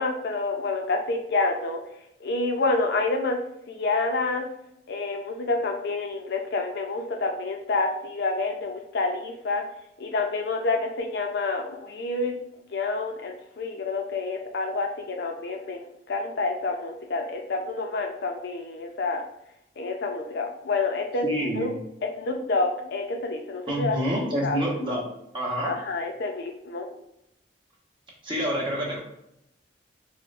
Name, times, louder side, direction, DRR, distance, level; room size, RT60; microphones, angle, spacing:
voice 1, 0.0-1.8 2.2-3.4 3.7-4.5 4.9-9.6 10.0-12.4 12.7-19.2 19.8-21.3 21.5-21.7 22.2-24.0 24.4-24.7 25.6-26.9, left 3 dB, 65° left, 3 dB, 0.5 m, -28 dB
voice 2, 21.2-21.8 23.7-25.1 25.3-25.7 28.2-29.0, equal, 30° right, -4 dB, 1.1 m, -27 dB
4.7 x 2.2 x 2.4 m, 0.79 s
head